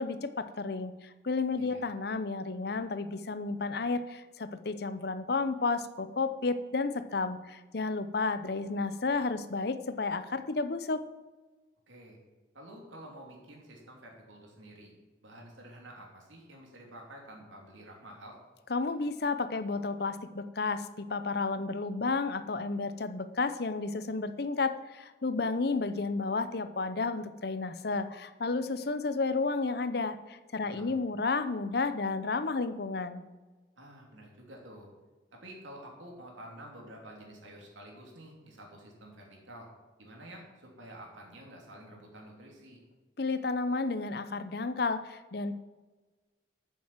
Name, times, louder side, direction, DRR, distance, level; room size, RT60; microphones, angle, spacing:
voice 1, 0.0-11.0 18.7-33.2 43.2-45.5, left 3 dB, 55° left, 12 dB, 0.7 m, -32 dB
voice 2, 11.9-12.2 12.5-14.9 15.2-18.4 30.6-31.0 33.8-34.9 35.4-39.7 40.0-42.8, right 1 dB, 85° right, 0 dB, 3.2 m, -49 dB
9.3 x 7.4 x 7.4 m, 1.2 s
head